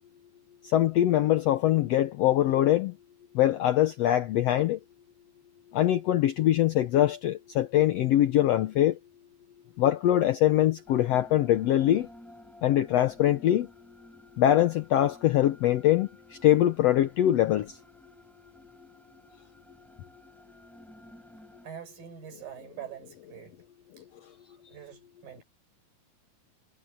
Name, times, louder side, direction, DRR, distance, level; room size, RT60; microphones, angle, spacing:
voice 1, 0.6-2.9 3.3-4.8 5.7-9.0 9.8-12.1 12.6-13.7 14.4-17.8, left 12 dB, 85° left, 1.4 m, -23 dB
sound 1, 10.9-21.7, equal, ahead, 7.2 m, -54 dB
voice 2, 21.6-23.5 24.0-24.1 24.5-25.4, right 9 dB, 85° right, 6.3 m, -44 dB
omnidirectional pair, 3.9 m